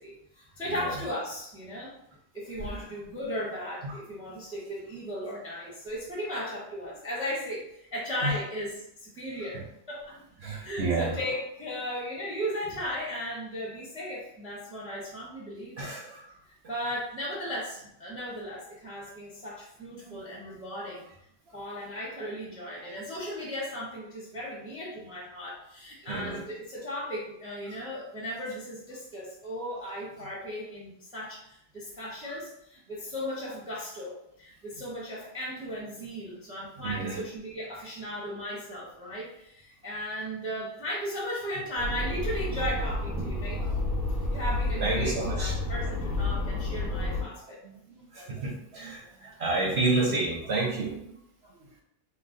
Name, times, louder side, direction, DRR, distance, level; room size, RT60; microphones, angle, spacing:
voice 1, 0.0-1.9 2.3-16.0 16.5-21.0 21.5-43.6 44.3-47.6, equal, 5° right, -6 dB, 0.5 m, -36 dB
voice 2, 10.4-11.1 15.8-16.2 20.1-20.2 26.1-26.4 36.8-37.2 44.8-45.5 47.9-50.9, right 3 dB, 60° right, -2 dB, 0.7 m, -29 dB
sound 1, 41.8-47.2, left 2 dB, 45° left, 0.9 m, -30 dB
3.0 x 2.2 x 3.7 m, 0.73 s
omnidirectional pair, 1.7 m